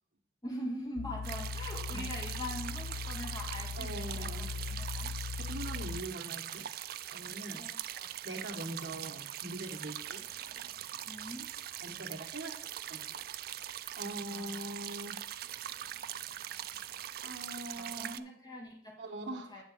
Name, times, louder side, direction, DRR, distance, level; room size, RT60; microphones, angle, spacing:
voice 1, 0.4-5.1 7.5-8.1 11.0-11.5 14.3-14.7 17.8-19.6, equal, 20° left, -1 dB, 1.2 m, -43 dB
sound 1, 1.0-6.0, left 4 dB, 50° left, 0.4 m, -39 dB
sound 2, 1.2-18.2, right 11 dB, 50° right, 0.3 m, -42 dB
voice 2, 3.7-4.5 5.4-6.7 7.1-7.6 8.2-10.2 11.8-13.2 14.0-15.2 17.2-18.2 19.0-19.6, right 1 dB, 70° right, 1 dB, 1.2 m, -42 dB
9.1 x 3.6 x 6.9 m, 0.69 s
head